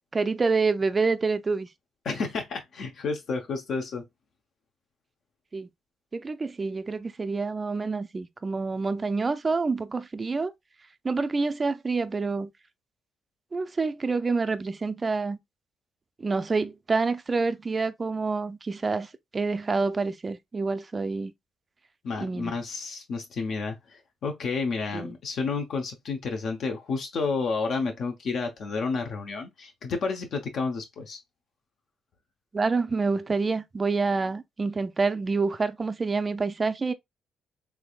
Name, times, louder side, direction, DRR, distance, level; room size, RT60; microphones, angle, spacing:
voice 1, 0.1-1.7 5.5-5.7 6.1-10.5 11.0-12.5 13.5-15.4 16.2-21.3 22.2-22.5 24.9-25.1 32.5-36.9, right 4 dB, 30° right, 0.4 m, -27 dB
voice 2, 2.0-4.0 22.0-31.2, left 4 dB, 65° left, 0.7 m, -31 dB
3.4 x 3.1 x 2.3 m
cardioid pair, 90°, 0 cm